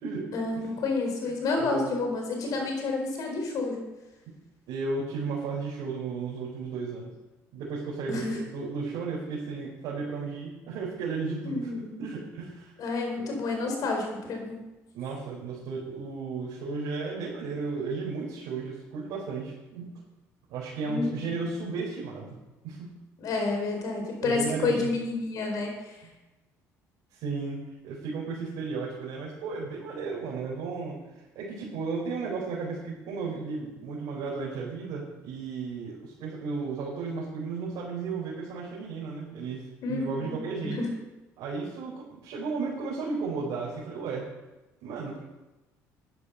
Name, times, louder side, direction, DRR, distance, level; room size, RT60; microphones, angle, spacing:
voice 1, 0.3-3.8 8.1-8.4 11.4-11.9 12.8-14.6 20.9-21.3 23.2-26.0 39.8-40.9, left 3 dB, 65° left, 2 dB, 4.4 m, -30 dB
voice 2, 1.5-1.9 2.5-2.6 4.7-7.1 7.5-12.8 13.2-13.3 14.9-19.9 20.5-22.4 22.6-22.9 24.2-24.9 27.1-27.6 27.8-31.0 31.3-40.8 41.4-44.2 44.8-45.2, right 4 dB, 75° right, -6 dB, 4.3 m, -34 dB
10.5 x 10.5 x 5.6 m, 1.1 s
cardioid pair, 95°, 7 cm